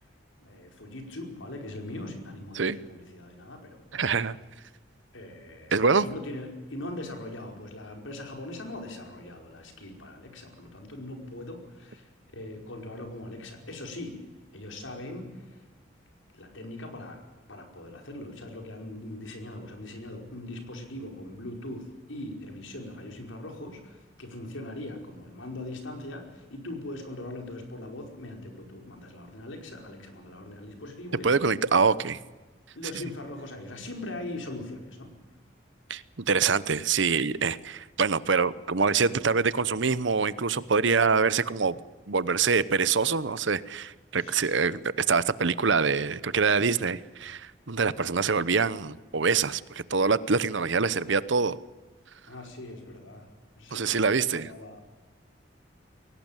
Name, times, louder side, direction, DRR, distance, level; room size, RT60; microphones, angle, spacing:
voice 1, 0.4-4.1 5.1-14.2 14.5-15.6 16.3-17.2 17.5-32.0 32.7-35.1 44.1-44.8 52.3-53.3 53.5-54.8, left 1 dB, 80° left, 5.0 m, -41 dB
voice 2, 3.9-4.4 5.7-6.1 31.2-32.2 35.9-41.7 42.1-44.8 45.1-51.6 53.7-54.5, right 5 dB, 70° right, 0.9 m, -25 dB
23.0 x 18.0 x 9.0 m
head